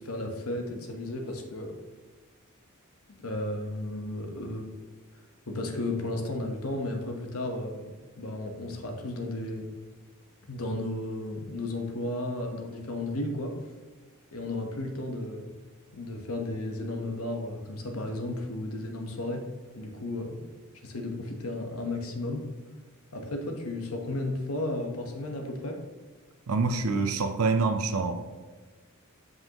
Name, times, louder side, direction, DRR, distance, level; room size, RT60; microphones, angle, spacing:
voice 1, 0.0-1.8 3.2-4.7 5.5-9.7 10.5-13.6 14.3-15.5 15.9-19.5 19.7-20.5 20.8-22.5 23.1-25.8, left 1 dB, 75° left, 3 dB, 1.0 m, -34 dB
voice 2, 26.5-28.2, right 4 dB, 85° right, 7 dB, 0.6 m, -26 dB
7.8 x 5.4 x 2.9 m, 1.3 s
head